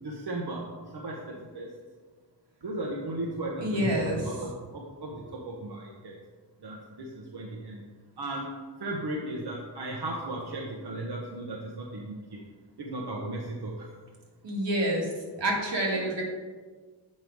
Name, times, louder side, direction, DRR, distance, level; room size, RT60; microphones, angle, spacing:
voice 1, 0.0-1.7 2.6-6.2 6.6-7.8 8.2-8.5 8.8-12.4 12.8-13.9 15.9-16.1, right 2 dB, 65° right, -1 dB, 0.9 m, -36 dB
voice 2, 3.6-4.2 14.4-15.0 15.4-16.2, right 1 dB, 80° right, -2 dB, 1.9 m, -27 dB
7.6 x 5.3 x 4.6 m, 1.4 s
wide cardioid pair, 145°, 42 cm